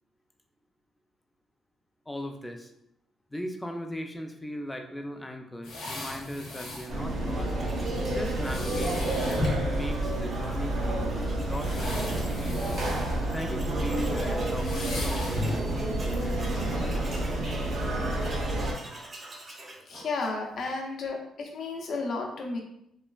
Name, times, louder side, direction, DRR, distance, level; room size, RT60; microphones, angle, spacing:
voice 1, 2.1-2.7 3.3-7.5 8.1-12.6 13.2-16.7, equal, 10° left, 4 dB, 0.4 m, -38 dB
sound 1, 5.6-6.9 8.4-9.7 10.6-10.7 11.5-13.2 13.5-13.7 14.6-15.7 16.1-16.2, left 2 dB, 90° left, 0.8 m, -36 dB
sound 2, 6.9-18.7, right 1 dB, 70° right, 0.8 m, -29 dB
Tools, 7.3-12.4 12.7-12.8 13.1-20.7, right 2 dB, 35° right, 0.6 m, -47 dB
voice 2, 19.9-22.6, left 3 dB, 60° left, 1 dB, 0.6 m, -33 dB
3.1 x 2.3 x 2.3 m, 0.77 s
cardioid pair, 90°, 0 cm